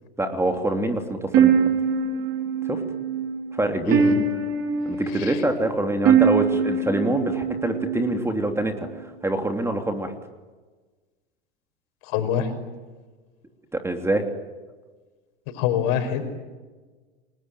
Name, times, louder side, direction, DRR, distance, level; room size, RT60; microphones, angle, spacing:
voice 1, 0.2-1.6 2.7-2.8 3.5-4.0 4.8-10.1 13.7-14.2, right 1 dB, 10° right, 5 dB, 3.1 m, -25 dB
sound 1, 1.3-8.5, right 6 dB, 45° right, 4.0 m, -23 dB
voice 2, 3.8-4.2 5.1-5.4 12.0-12.5 15.5-16.2, left 9 dB, 55° left, 7 dB, 5.8 m, -25 dB
30.0 x 21.0 x 9.3 m, 1.3 s
hypercardioid pair, 95°, 32 cm